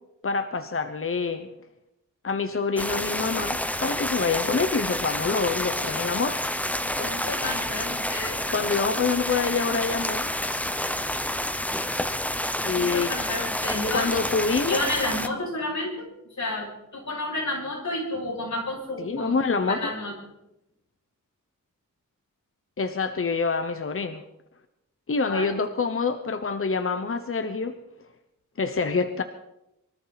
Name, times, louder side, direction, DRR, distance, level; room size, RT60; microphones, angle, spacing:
voice 1, 0.2-1.5 2.2-6.4 8.5-10.3 12.6-13.1 13.9-14.8 19.0-19.9 22.8-24.2 25.1-27.7 28.6-29.2, left 4 dB, 45° left, 9 dB, 1.0 m, -26 dB
sound 1, 2.8-15.3, left 1 dB, 5° left, 0.8 m, -29 dB
voice 2, 7.0-8.4 12.7-14.1 14.7-16.1 16.4-19.4 19.7-20.1 25.3-25.5, left 2 dB, 60° left, -2 dB, 6.8 m, -30 dB
24.0 x 13.5 x 4.2 m, 0.85 s
wide cardioid pair, 90°, 32 cm